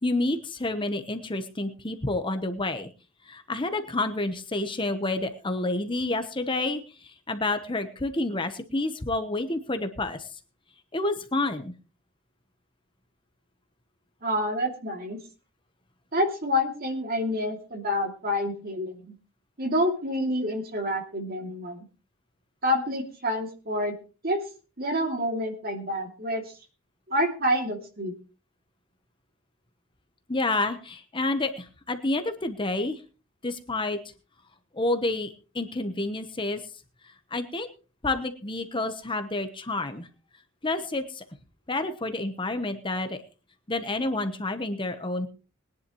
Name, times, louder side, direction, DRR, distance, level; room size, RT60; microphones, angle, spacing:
voice 1, 0.0-2.9 3.3-10.3 10.9-11.7 30.3-33.0 33.4-34.0 34.7-36.6 37.3-37.7 38.0-40.1 40.6-41.2 41.7-43.2 43.7-45.3, left 2 dB, 25° left, 8 dB, 1.1 m, -29 dB
voice 2, 14.2-15.2 16.1-19.1 19.6-21.9 22.6-23.9 24.2-24.4 24.8-26.4 27.1-28.1, equal, 45° right, 3 dB, 2.7 m, -28 dB
21.0 x 10.5 x 3.1 m, 0.35 s
head